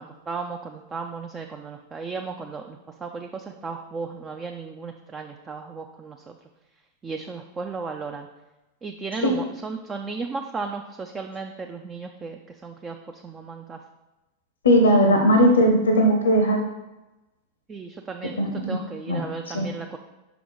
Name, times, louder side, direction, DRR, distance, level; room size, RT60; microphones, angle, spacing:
voice 1, 0.0-6.3 7.0-8.3 8.8-13.8 17.7-20.0, right 4 dB, 20° right, 4 dB, 0.4 m, -35 dB
voice 2, 14.6-16.6 18.4-18.8 19.1-19.2 19.5-19.7, equal, 70° left, 3 dB, 0.7 m, -18 dB
6.0 x 4.6 x 3.9 m, 1.1 s
figure-of-eight pair, 90°, 0 cm